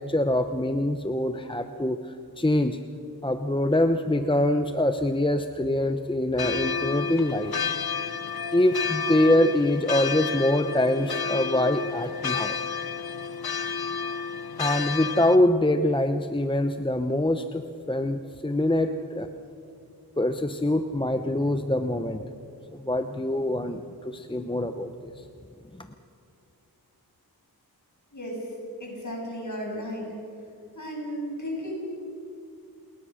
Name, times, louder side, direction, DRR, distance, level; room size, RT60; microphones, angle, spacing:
voice 1, 0.0-2.0 2.4-2.8 3.2-7.5 8.5-12.6 14.6-19.3 20.2-22.2 22.7-25.2 25.8-25.9, left 1 dB, 15° left, 8 dB, 0.9 m, -24 dB
sound 1, 6.4-15.4, left 6 dB, 70° left, 0.8 m, -31 dB
voice 2, 28.1-28.5 28.8-30.1 30.7-31.8, equal, 50° left, -1 dB, 7.4 m, -34 dB
29.0 x 20.5 x 6.4 m, 2.4 s
wide cardioid pair, 75°, 38 cm